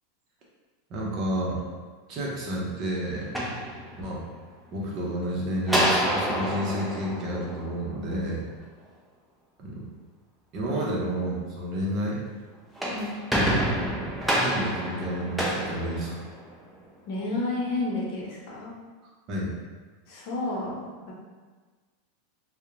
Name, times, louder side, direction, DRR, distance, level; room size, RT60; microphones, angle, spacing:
voice 1, 0.9-1.6 2.1-3.3 4.0-4.2 4.7-8.4 9.6-9.9 10.5-12.2 14.3-16.1 19.3-19.5, right 1 dB, 40° right, -4 dB, 0.7 m, -30 dB
sound 1, 3.2-4.4 5.7-8.1 12.5-16.6, equal, 5° right, 0.5 m, -28 dB
voice 2, 17.1-18.7 20.1-21.1, left 2 dB, 55° left, -4 dB, 0.7 m, -31 dB
2.8 x 2.1 x 2.4 m, 1.4 s
supercardioid pair, 130°, 0 cm